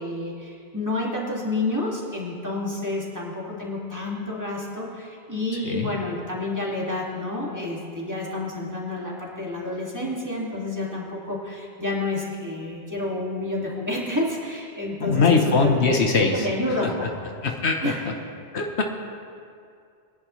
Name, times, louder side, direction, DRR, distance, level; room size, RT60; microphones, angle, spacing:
voice 1, 0.0-15.4 15.8-16.1 16.3-17.3 17.8-18.0, left 2 dB, 15° right, -4 dB, 2.2 m, -29 dB
voice 2, 15.0-16.5 17.4-17.9 18.5-18.8, left 4 dB, 70° left, 3 dB, 1.3 m, -21 dB
22.5 x 10.5 x 3.2 m, 2.3 s
omnidirectional pair, 1.2 m